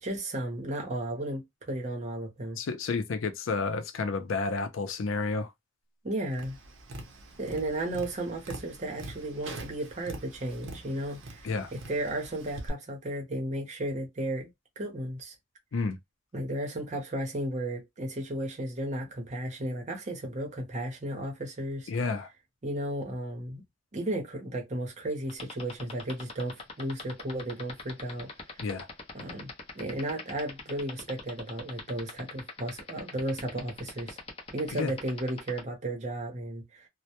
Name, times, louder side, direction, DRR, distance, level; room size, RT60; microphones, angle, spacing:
voice 1, 0.0-2.6 6.0-6.6 7.4-14.5 14.8-15.3 16.3-21.9 22.6-23.6 23.9-28.3 29.1-29.5 29.7-34.2 34.5-36.9, right 1 dB, 40° right, 0.8 m, -34 dB
voice 2, 2.6-5.5 11.4-11.7 15.7-16.0 21.9-22.3 28.6-28.9 34.7-34.9, left 4 dB, 85° left, 0.5 m, -30 dB
Tap, 6.3-12.7, right 2 dB, 80° right, 0.6 m, -44 dB
sound 1, 25.3-35.6, left 5 dB, 30° left, 0.6 m, -40 dB
2.1 x 2.1 x 2.8 m
head